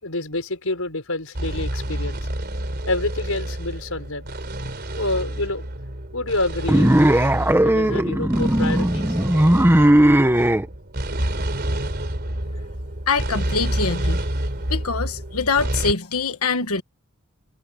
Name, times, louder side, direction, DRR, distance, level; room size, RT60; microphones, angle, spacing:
voice 1, 0.0-2.2 2.9-4.3 5.0-5.7 6.1-6.9 7.6-9.2 10.4-10.5, left 2 dB, 70° left, 6.4 m, -27 dB
sound 1, 1.3-15.9, right 1 dB, 50° right, 3.9 m, -28 dB
sound 2, 6.7-10.6, right 1 dB, 10° right, 1.0 m, -17 dB
voice 2, 13.1-14.2 14.7-16.8, left 4 dB, 90° left, 1.4 m, -24 dB
head